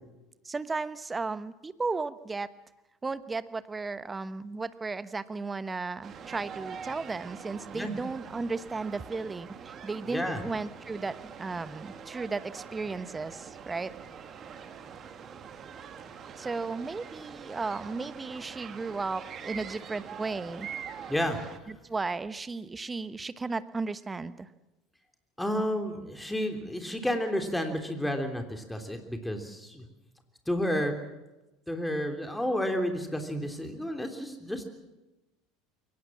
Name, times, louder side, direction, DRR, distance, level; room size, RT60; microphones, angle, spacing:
voice 1, 0.4-2.5 3.0-13.9 16.4-20.7 21.7-24.5, right 3 dB, 20° right, 14 dB, 1.1 m, -35 dB
sound 1, 6.0-21.6, right 7 dB, 40° right, 2.0 m, -44 dB
voice 2, 10.0-10.4 21.1-21.4 25.4-29.8 30.5-30.9 31.7-34.6, equal, 5° left, 5 dB, 3.4 m, -31 dB
22.5 x 18.5 x 7.4 m, 1.0 s
figure-of-eight pair, 70°, 0 cm